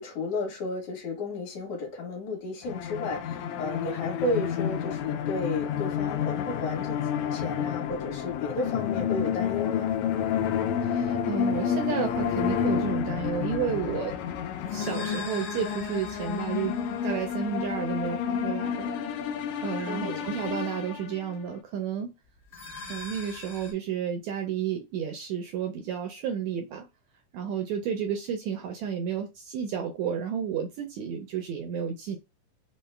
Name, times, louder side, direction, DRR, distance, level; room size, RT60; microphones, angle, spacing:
voice 1, 0.0-7.0 7.3-9.9 19.8-20.3, left 2 dB, 65° left, 2.3 m, -33 dB
sound 1, 2.6-21.4, left 8 dB, 85° left, 1.6 m, -30 dB
voice 2, 10.8-14.2 14.7-16.8 17.0-18.9 19.6-22.1 22.9-26.9 27.3-32.2, right 7 dB, 80° right, 1.6 m, -32 dB
sound 2, 12.1-18.7 22.4-23.7, left 3 dB, 35° left, 1.0 m, -44 dB
5.3 x 2.1 x 3.2 m
omnidirectional pair, 3.8 m